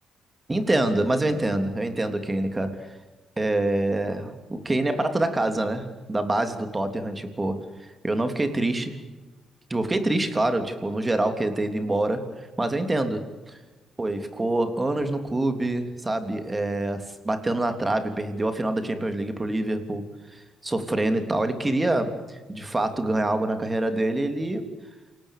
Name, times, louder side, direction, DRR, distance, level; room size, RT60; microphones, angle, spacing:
voice 1, 0.5-2.9 3.4-7.6 8.0-9.0 9.7-12.2 12.6-13.6 14.0-24.7, right 2 dB, 20° right, 7 dB, 3.3 m, -26 dB
28.0 x 18.5 x 6.8 m, 1.2 s
cardioid pair, 90°, 0 cm